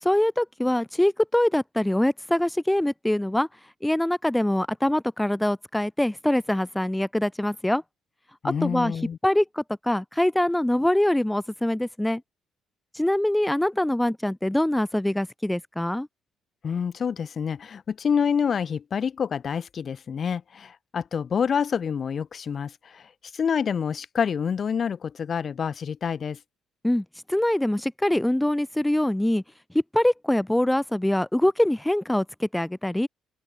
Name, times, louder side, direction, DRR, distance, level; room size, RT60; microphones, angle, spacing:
voice 1, 0.0-3.5 3.8-7.8 8.6-8.9 9.2-12.2 13.0-16.1 26.8-29.4 29.9-33.1, left 1 dB, 5° left, 3.6 m, -24 dB
voice 2, 8.4-9.2 16.6-23.0 23.3-26.4, left 7 dB, 45° left, 4.2 m, -27 dB
open air
cardioid pair, 105°, 0 cm